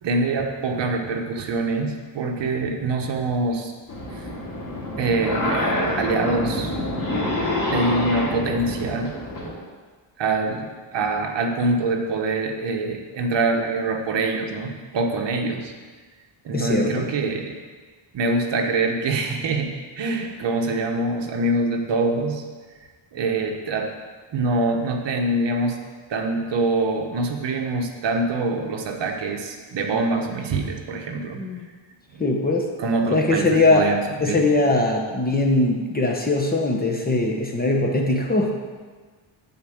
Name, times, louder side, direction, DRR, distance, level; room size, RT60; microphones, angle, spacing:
voice 1, 0.0-3.7 4.1-4.3 5.0-6.8 7.7-9.1 10.2-15.7 16.4-17.5 18.1-19.7 20.0-22.4 23.1-23.9 24.3-25.8 26.1-31.4 32.1-32.2 32.8-33.4 33.7-34.4, right 3 dB, 60° right, 2 dB, 1.3 m, -24 dB
sound 1, 3.9-9.5, left 1 dB, 40° left, 2.8 m, -26 dB
voice 2, 16.5-17.1 31.3-31.7 32.2-32.7 33.1-33.9 34.2-38.6, left 2 dB, 20° left, 1 dB, 1.0 m, -21 dB
10.0 x 4.4 x 7.8 m, 1.4 s
cardioid pair, 150°, 49 cm